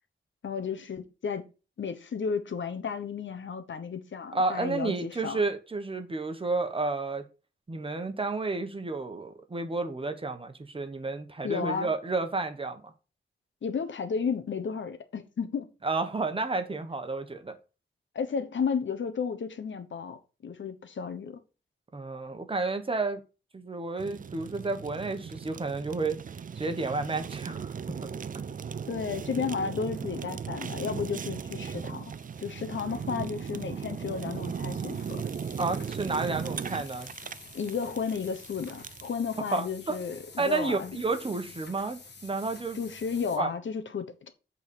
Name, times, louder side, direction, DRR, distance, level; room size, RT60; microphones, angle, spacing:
voice 1, 0.4-1.5 1.8-5.4 11.4-11.9 13.6-15.7 18.1-21.4 28.9-32.1 32.4-35.2 37.5-41.0 42.7-44.3, left 6 dB, 80° left, 1.1 m, -33 dB
voice 2, 4.3-7.2 7.7-12.9 15.8-17.6 21.9-23.2 23.5-26.2 26.5-27.7 28.0-28.1 28.3-28.4 35.6-37.1 39.5-40.0 40.4-42.8 43.4-43.5, right 3 dB, 30° right, 1.1 m, -31 dB
Fire, 24.0-39.1, right 6 dB, 45° right, 0.4 m, -37 dB
sound 1, 27.8-43.4, left 4 dB, 60° left, 1.7 m, -51 dB
8.2 x 4.0 x 6.8 m
wide cardioid pair, 165°, 19 cm